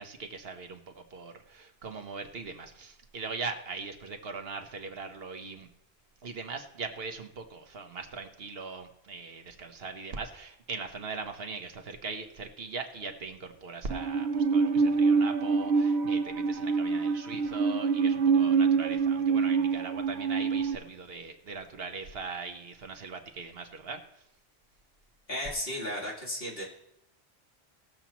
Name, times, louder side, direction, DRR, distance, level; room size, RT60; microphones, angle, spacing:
voice 1, 0.0-5.7 6.2-24.0, right 4 dB, 65° right, 6 dB, 1.2 m, -40 dB
Musical instrument, 13.9-20.7, right 5 dB, 85° right, 1.1 m, -26 dB
voice 2, 25.3-26.6, left 1 dB, 65° left, -6 dB, 3.5 m, -34 dB
18.5 x 7.1 x 3.0 m, 0.79 s
omnidirectional pair, 1.1 m